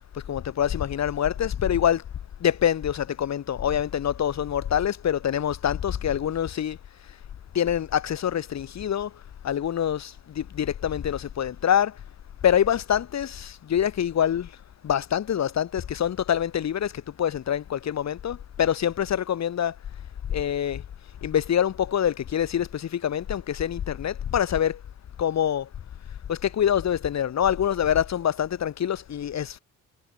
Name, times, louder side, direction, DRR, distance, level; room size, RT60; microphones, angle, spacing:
voice 1, 0.3-2.0 2.4-6.8 7.5-9.1 9.4-11.9 12.4-14.5 14.8-16.9 17.2-19.7 20.3-20.8 21.2-24.8 25.2-25.7 26.3-29.6, left 9 dB, 60° left, 7.3 m, -25 dB
cardioid pair, 90°, 30 cm